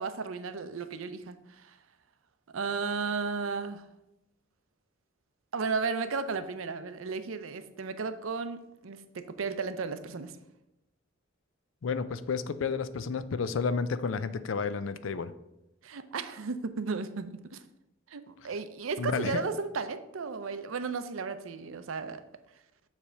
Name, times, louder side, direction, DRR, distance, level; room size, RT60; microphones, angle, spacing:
voice 1, 0.0-1.8 2.5-3.9 5.5-10.4 15.8-17.6 18.1-22.2, right 4 dB, 90° right, 11 dB, 0.6 m, -34 dB
voice 2, 11.8-15.3 19.0-19.4, left 5 dB, 75° left, 13 dB, 0.4 m, -31 dB
7.3 x 3.3 x 6.3 m, 0.90 s
head